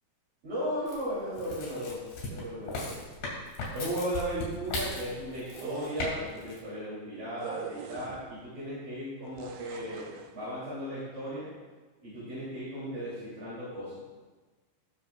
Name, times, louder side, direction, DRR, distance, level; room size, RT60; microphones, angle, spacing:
voice 1, 0.4-3.0 3.7-11.5 12.0-13.9, equal, 60° right, -11 dB, 5.2 m, -36 dB
sound 1, 0.9-6.1 6.4-6.6, left 2 dB, 90° left, 5.1 m, -37 dB
sound 2, 5.4-6.4 7.4-8.5 9.4-10.3, right 8 dB, 80° right, 2.2 m, -42 dB
19.0 x 7.4 x 2.6 m, 1.3 s
omnidirectional pair, 4.7 m